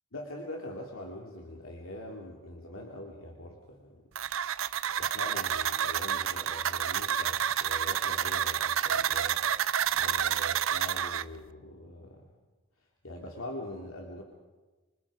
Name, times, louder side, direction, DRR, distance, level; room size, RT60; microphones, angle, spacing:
voice 1, 0.1-4.0 5.0-9.7 10.0-12.3 13.0-14.2, left 1 dB, 85° left, 0 dB, 2.9 m, -43 dB
sound 1, 4.2-11.2, right 9 dB, 75° right, 0.6 m, -29 dB
27.0 x 26.0 x 5.0 m, 1.2 s
head